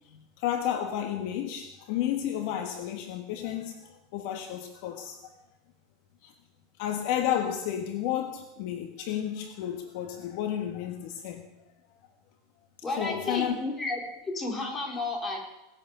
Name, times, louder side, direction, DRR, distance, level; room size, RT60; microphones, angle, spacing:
voice 1, 0.1-5.2 6.2-6.3 6.8-11.4 13.0-13.5, left 10 dB, 55° left, 5 dB, 1.5 m, -32 dB
voice 2, 12.8-14.0 14.3-15.4, left 2 dB, 15° left, 0 dB, 3.7 m, -32 dB
18.5 x 9.7 x 6.9 m, 0.93 s
supercardioid pair, 160°, 0 cm